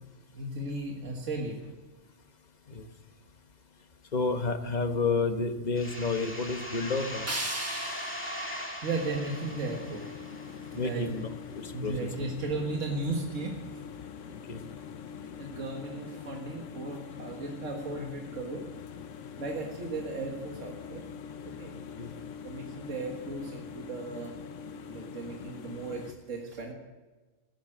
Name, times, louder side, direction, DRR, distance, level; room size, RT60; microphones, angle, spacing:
voice 1, 0.3-1.5 8.8-10.1 10.7-11.1 11.7-13.6 15.4-18.7 19.4-21.0 21.4-21.7 22.4-24.3 24.9-26.7, right 3 dB, 75° right, 1 dB, 2.0 m, -35 dB
voice 2, 4.1-7.3 10.7-11.3 11.6-11.9 14.5-14.6 22.0-22.1, left 3 dB, 35° left, 7 dB, 1.2 m, -30 dB
sound 1, 5.7-11.2, equal, 10° left, 1.9 m, -40 dB
sound 2, 7.3-10.2, right 1 dB, 10° right, 1.1 m, -39 dB
sound 3, 8.9-26.1, left 7 dB, 75° left, 1.2 m, -43 dB
14.0 x 10.5 x 7.7 m, 1.3 s
omnidirectional pair, 1.3 m